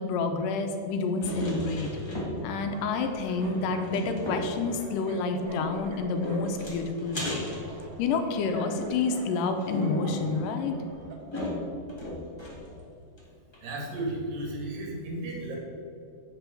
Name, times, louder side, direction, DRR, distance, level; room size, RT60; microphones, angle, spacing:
voice 1, 0.0-1.9 2.4-7.4 8.0-10.8, left 4 dB, 80° left, 5 dB, 2.3 m, -29 dB
sound 1, 1.2-2.7 2.9-3.0 3.4-4.6 5.6-8.3 8.8-12.8 13.2-13.3 13.5-13.6, left 1 dB, 25° left, 0.5 m, -36 dB
sound 2, 2.5-11.2, right 3 dB, 60° right, 1.9 m, -48 dB
voice 2, 13.6-15.6, right 1 dB, 80° right, -1 dB, 3.6 m, -34 dB
9.0 x 5.3 x 6.9 m, 2.6 s
omnidirectional pair, 4.0 m